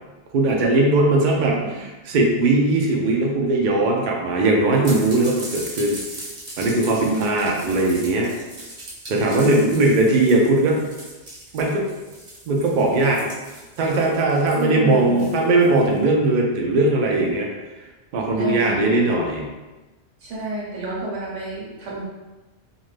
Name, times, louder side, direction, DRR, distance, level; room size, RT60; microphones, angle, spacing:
voice 1, 0.3-6.0 6.6-8.3 9.1-10.8 11.5-11.8 12.5-13.3 13.8-17.5 18.1-19.5, right 2 dB, 60° right, 0 dB, 0.5 m, -19 dB
voice 2, 1.4-1.8 7.0-7.8 9.3-9.9 14.6-15.4 18.4-19.2 20.2-22.0, right 2 dB, 85° right, -4 dB, 1.2 m, -30 dB
sound 1, 4.8-15.9, right 1 dB, 45° right, 0.8 m, -39 dB
2.5 x 2.4 x 3.2 m, 1.1 s
omnidirectional pair, 1.2 m